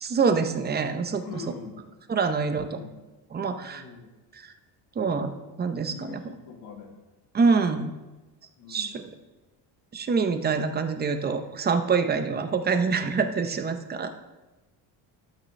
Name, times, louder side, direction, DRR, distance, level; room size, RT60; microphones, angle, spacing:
voice 1, 0.0-1.4 2.1-2.8 3.3-3.8 4.3-4.5 5.0-5.3 5.6-6.3 7.3-7.9 8.7-9.0 9.9-14.1, right 5 dB, 25° right, 8 dB, 0.6 m, -25 dB
voice 2, 1.2-1.8 2.4-3.0 3.6-4.2 5.9-7.0 8.6-9.0 12.2-12.3, left 5 dB, 75° left, -1 dB, 2.1 m, -43 dB
12.0 x 8.1 x 3.2 m, 1.1 s
cardioid pair, 140°, 43 cm